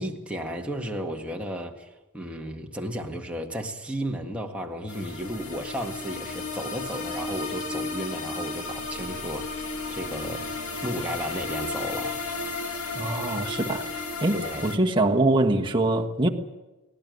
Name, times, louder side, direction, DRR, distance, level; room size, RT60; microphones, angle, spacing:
voice 1, 0.0-1.9 2.1-10.5 10.8-12.2 14.3-14.7, equal, 5° right, 1.8 m, -34 dB
sound 1, 4.9-14.8, left 3 dB, 80° left, 2.1 m, -33 dB
voice 2, 12.9-16.3, right 2 dB, 20° right, 1.4 m, -24 dB
19.0 x 18.0 x 9.4 m
head